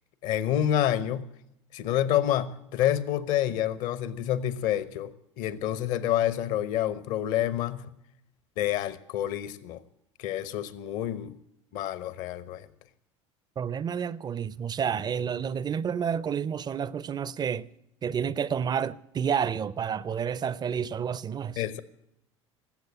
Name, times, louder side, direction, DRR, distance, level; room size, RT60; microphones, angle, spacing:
voice 1, 0.2-1.3 1.7-7.9 8.6-9.8 10.2-11.4 11.7-12.7 21.6-21.8, left 11 dB, 55° left, 1.0 m, -28 dB
voice 2, 13.6-17.7 18.0-21.6, right 7 dB, 25° right, 0.5 m, -30 dB
19.0 x 8.0 x 8.7 m
figure-of-eight pair, 70°, 16 cm